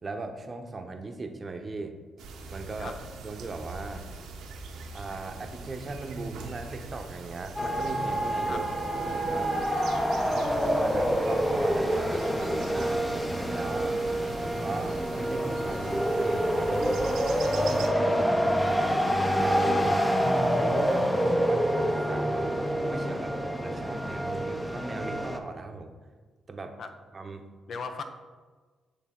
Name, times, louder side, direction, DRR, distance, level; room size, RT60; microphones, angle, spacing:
voice 1, 0.0-1.9 2.5-2.9 3.2-4.1 4.9-8.7 9.0-9.7 10.3-14.1 14.3-18.9 19.4-22.6 22.9-26.0 26.5-26.8 27.1-27.5, right 3 dB, 40° right, 5 dB, 0.7 m, -38 dB
sound 1, 2.2-17.9, right 4 dB, 85° right, 0.8 m, -43 dB
sound 2, 7.6-25.4, equal, 10° left, 0.6 m, -27 dB
voice 2, 27.7-28.0, left 5 dB, 65° left, 8 dB, 0.6 m, -37 dB
8.3 x 3.3 x 3.7 m, 1.4 s
supercardioid pair, 60°, 0 cm